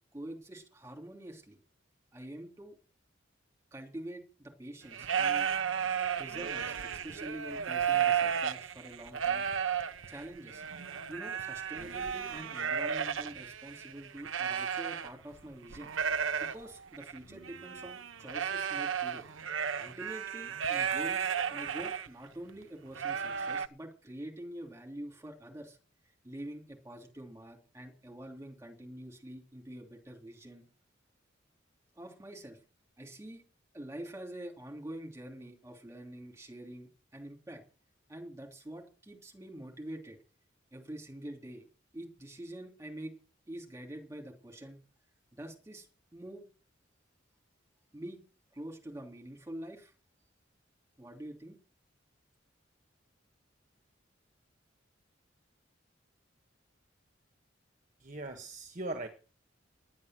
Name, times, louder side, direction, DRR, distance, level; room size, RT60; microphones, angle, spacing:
voice 1, 0.1-1.6 2.1-2.8 3.7-5.5 6.2-6.8 7.0-9.5 10.1-10.6 11.1-15.9 16.4-19.3 19.8-25.8 26.2-30.6 31.9-32.6 33.0-33.4 33.7-37.6 38.1-40.2 40.7-41.7 41.9-43.1 43.5-44.8 45.3-45.9 46.1-46.4 47.9-48.2 48.5-49.9 51.0-51.6, right 1 dB, 15° right, 3.1 m, -46 dB
sound 1, 4.8-15.4 15.7-22.1 22.5-22.6 23.0-23.7, right 8 dB, 85° right, 0.8 m, -33 dB
voice 2, 58.0-59.1, right 2 dB, 40° right, 1.4 m, -39 dB
10.5 x 9.6 x 7.5 m
head